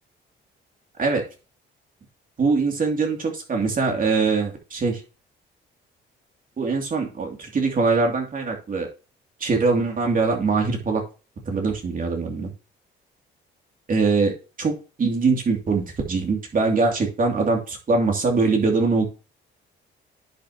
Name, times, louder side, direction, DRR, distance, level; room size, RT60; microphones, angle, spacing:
voice 1, 2.4-5.0 6.6-8.9 9.4-11.0 11.5-12.5 13.9-19.0, right 4 dB, 45° right, 1 dB, 2.8 m, -22 dB
10.5 x 6.8 x 3.0 m, 0.32 s
cardioid pair, 90°, 20 cm